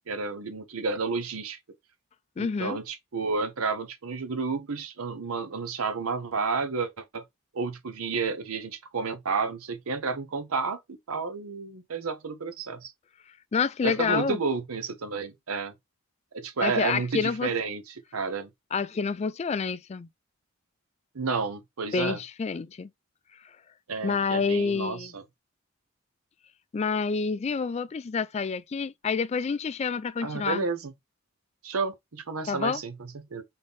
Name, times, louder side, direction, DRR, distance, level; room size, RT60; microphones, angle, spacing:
voice 1, 0.1-1.6 2.4-7.2 7.5-12.9 13.8-15.7 16.3-18.5 21.1-22.2 23.9-25.2 30.2-30.9 31.6-33.4, right 4 dB, 85° right, 0.8 m, -31 dB
voice 2, 2.4-2.8 13.5-14.4 16.6-17.5 18.7-20.1 21.9-22.9 24.0-25.1 26.7-30.6 32.5-32.8, left 5 dB, 30° left, 0.3 m, -28 dB
4.0 x 3.7 x 3.5 m
head